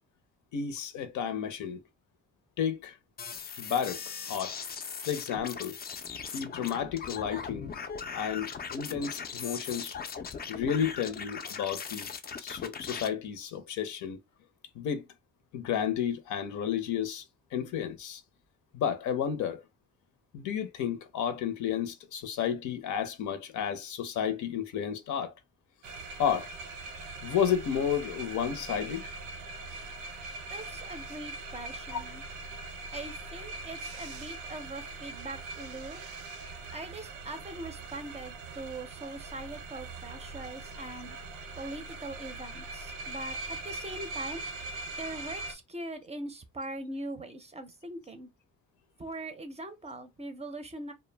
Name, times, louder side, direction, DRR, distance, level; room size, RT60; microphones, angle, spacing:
voice 1, 0.5-1.8 2.6-2.9 3.6-4.0 4.3-4.5 5.1-5.8 6.3-7.7 8.1-10.0 10.5-12.1 12.4-14.2 14.8-15.0 15.5-17.2 17.5-18.2 18.7-19.6 20.3-25.3 26.2-26.5 27.2-29.1 31.9-32.0, left 8 dB, 75° left, 0.6 m, -32 dB
sound 1, 3.2-13.1, left 6 dB, 30° left, 0.4 m, -39 dB
baby birth showerkillextended, 25.8-45.5, right 3 dB, 85° right, 0.6 m, -41 dB
voice 2, 30.5-32.2 32.9-36.0 36.7-41.2 41.6-43.4 43.6-44.4 45.0-48.3 49.0-50.9, right 1 dB, 20° right, 0.5 m, -41 dB
2.2 x 2.1 x 3.2 m
cardioid pair, 90°, 30 cm